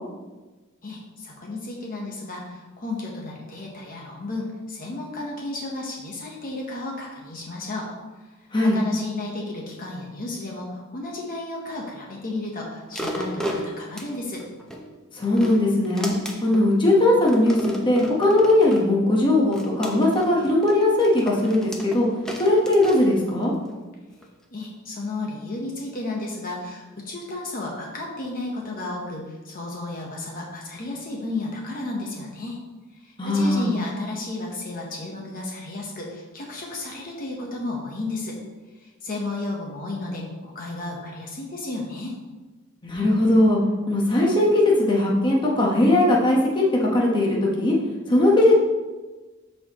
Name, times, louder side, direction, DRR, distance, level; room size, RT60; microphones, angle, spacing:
voice 1, 0.8-7.9 8.2-8.3 8.6-14.4 24.5-32.6 33.0-38.4 38.8-42.2, left 2 dB, 40° left, -1 dB, 1.1 m, -33 dB
sound 1, 12.9-14.8 15.2-16.7 17.3-18.9 19.5-23.7 24.2-24.3, equal, 5° left, 0.8 m, -34 dB
voice 2, 15.1-16.1 16.4-17.6 17.8-22.1 22.4-23.5 33.2-33.7 42.8-43.6 43.9-47.7 48.1-48.5, left 1 dB, 20° left, -3 dB, 1.2 m, -19 dB
13.0 x 4.4 x 3.0 m, 1.2 s
head